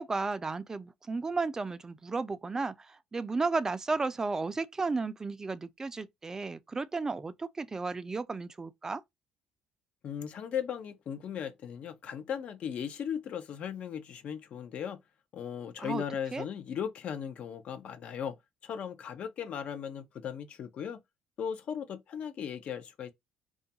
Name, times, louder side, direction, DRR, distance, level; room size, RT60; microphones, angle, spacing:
voice 1, 0.0-9.0 15.8-16.0 16.3-16.5, right 3 dB, 20° right, 0.3 m, -33 dB
voice 2, 10.0-15.0 15.3-18.4 18.6-21.0 21.4-23.1, left 8 dB, 55° left, 0.5 m, -37 dB
2.3 x 2.2 x 2.7 m
cardioid pair, 95°, 3 cm